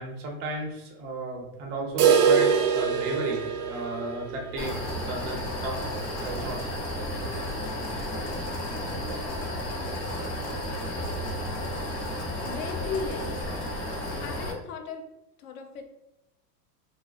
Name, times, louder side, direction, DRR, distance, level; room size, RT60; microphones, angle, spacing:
voice 1, 0.0-5.8 6.2-6.6 7.2-7.4, right 2 dB, 25° right, 0 dB, 0.4 m, -34 dB
sound 1, 2.0-7.8 8.1-8.2 8.6-8.7 9.2-9.3 10.1-10.2, right 7 dB, 70° right, 0.5 m, -26 dB
sound 2, 4.6-14.5, left 1 dB, 40° left, 1.1 m, -32 dB
voice 2, 12.4-13.4 14.2-15.1 15.4-15.8, left 5 dB, 60° left, 5 dB, 0.6 m, -36 dB
2.4 x 2.3 x 2.3 m, 0.91 s
hypercardioid pair, 120°, 49 cm